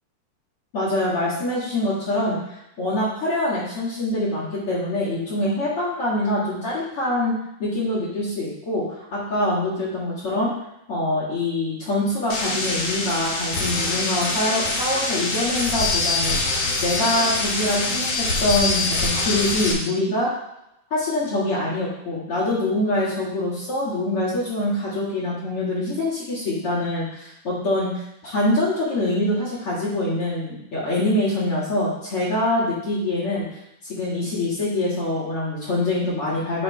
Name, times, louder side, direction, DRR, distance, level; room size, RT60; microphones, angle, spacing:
voice 1, 0.7-10.5 10.9-20.3 20.9-33.4 33.8-36.6, left 1 dB, 50° left, -9 dB, 1.9 m, -24 dB
sound 1, 12.3-19.7, left 3 dB, 85° left, 1.2 m, -24 dB
8.2 x 3.5 x 4.5 m, 0.83 s
omnidirectional pair, 4.6 m